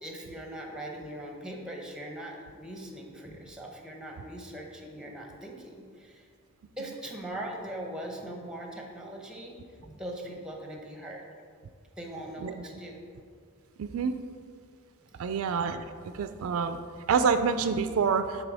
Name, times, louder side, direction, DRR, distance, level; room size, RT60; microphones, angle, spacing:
voice 1, 0.0-6.2 6.8-9.6 9.9-11.2 12.0-13.0 15.1-15.3, right 1 dB, 5° right, 1 dB, 0.8 m, -41 dB
voice 2, 13.8-14.2 15.2-15.9 16.1-16.8 17.1-18.4, right 6 dB, 70° right, 9 dB, 0.4 m, -27 dB
9.0 x 3.7 x 4.8 m, 2.1 s
head